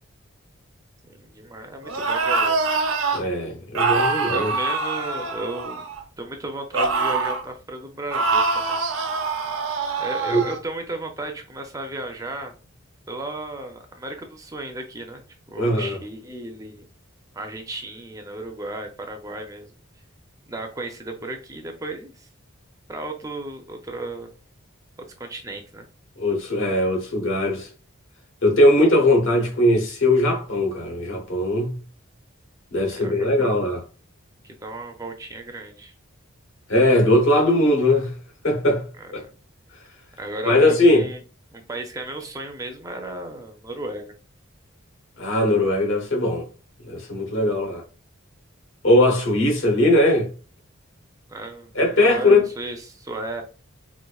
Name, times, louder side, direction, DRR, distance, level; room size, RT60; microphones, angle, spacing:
voice 1, 1.1-2.6 4.3-5.9 6.2-8.8 10.0-12.5 13.1-15.2 15.5-16.9 17.3-19.7 20.5-22.3 22.9-24.3 25.0-25.9 32.9-33.5 34.4-35.9 39.0-39.3 40.2-41.2 41.5-44.1 51.3-53.4, right 2 dB, 15° right, 0.4 m, -34 dB
sound 1, 1.9-3.2 3.8-6.0 6.7-7.5 8.1-10.6, right 4 dB, 75° right, 0.6 m, -24 dB
voice 2, 3.1-4.5 10.3-10.4 15.6-16.0 26.2-27.7 28.4-31.8 32.7-33.8 36.7-38.1 38.4-38.8 39.1-39.2 40.4-41.0 45.2-46.4 46.8-47.8 48.8-50.3 51.7-52.4, left 1 dB, 65° left, 1.0 m, -19 dB
4.1 x 2.5 x 2.3 m
head